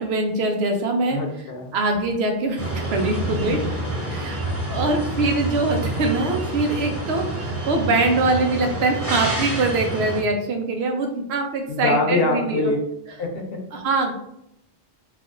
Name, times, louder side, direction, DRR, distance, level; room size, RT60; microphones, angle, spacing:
voice 1, 0.0-1.2 1.7-2.6 2.9-3.6 4.1-12.7 13.7-14.1, right 2 dB, 90° right, 3 dB, 0.9 m, -23 dB
voice 2, 1.1-1.7 3.2-3.8 4.3-4.5 11.7-12.8 13.1-13.6, left 3 dB, 70° left, 2 dB, 0.8 m, -25 dB
sound 1, 2.6-10.2, right 2 dB, 20° right, 0.4 m, -28 dB
3.3 x 2.3 x 2.5 m, 0.76 s
omnidirectional pair, 1.0 m